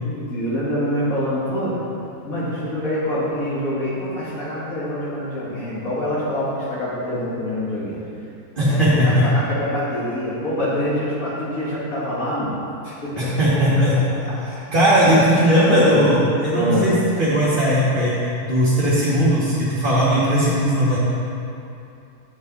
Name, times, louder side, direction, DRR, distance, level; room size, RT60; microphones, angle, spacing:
voice 1, 0.0-1.7 2.2-8.0 8.6-12.6 12.8-13.3 13.9-14.0 15.7-16.1 16.5-17.0, left 1 dB, 70° left, -8 dB, 2.0 m, -25 dB
voice 2, 8.6-9.2 13.1-14.0 14.4-18.1 18.4-21.0, equal, 35° right, -9 dB, 1.4 m, -18 dB
8.2 x 6.8 x 4.0 m, 2.7 s
omnidirectional pair, 1.6 m